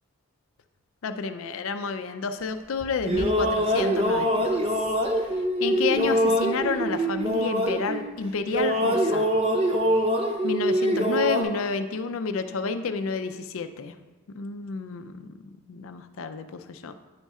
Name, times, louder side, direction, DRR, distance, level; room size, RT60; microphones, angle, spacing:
voice 1, 1.0-4.6 5.6-9.3 10.4-13.9 14.3-16.9, left 4 dB, 75° left, 9 dB, 0.4 m, -30 dB
sound 1, 2.8-8.2 8.5-11.4, equal, 30° right, 0.6 m, -24 dB
9.7 x 3.5 x 4.2 m, 1.2 s
head